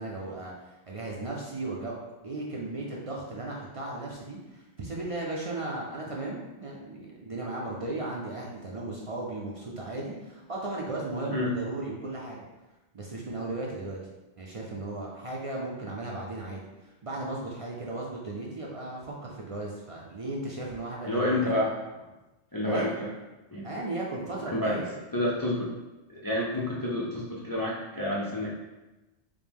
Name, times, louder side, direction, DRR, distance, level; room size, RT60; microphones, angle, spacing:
voice 1, 0.0-12.4 12.9-14.0 14.4-21.5 22.6-22.9 23.6-24.9, right 2 dB, 45° right, -3 dB, 0.4 m, -36 dB
voice 2, 21.0-21.8 22.5-23.1 23.5-23.7 24.5-24.8 25.1-25.7 26.2-28.5, left 1 dB, 35° left, -5 dB, 0.3 m, -28 dB
5.0 x 2.1 x 3.4 m, 1.1 s
omnidirectional pair, 1.1 m